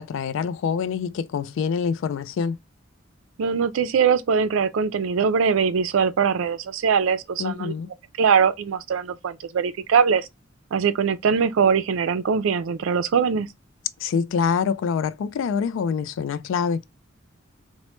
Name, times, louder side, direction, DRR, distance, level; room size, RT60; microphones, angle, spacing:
voice 1, 0.0-2.6 7.4-7.9 14.0-16.8, left 6 dB, 70° left, 0.3 m, -25 dB
voice 2, 3.4-7.7 8.2-10.3 10.7-13.5, right 6 dB, 75° right, 0.4 m, -22 dB
3.0 x 2.1 x 3.0 m
head